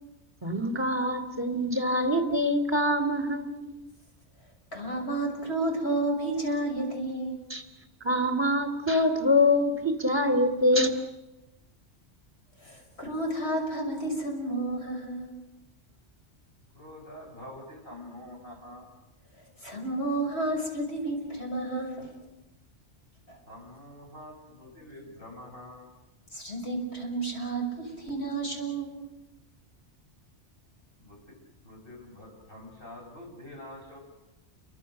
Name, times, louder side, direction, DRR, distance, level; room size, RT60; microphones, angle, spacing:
voice 1, 0.4-3.7 7.5-7.6 8.0-10.9, left 1 dB, 20° right, 6 dB, 2.8 m, -25 dB
voice 2, 4.7-7.4 12.6-15.4 19.6-22.1 23.3-23.4 26.3-29.0, right 2 dB, 65° left, 0 dB, 6.6 m, -31 dB
voice 3, 16.7-18.9 23.5-25.9 31.0-34.0, left 1 dB, 50° left, -1 dB, 8.2 m, -46 dB
29.5 x 24.0 x 6.7 m, 0.95 s
omnidirectional pair, 1.2 m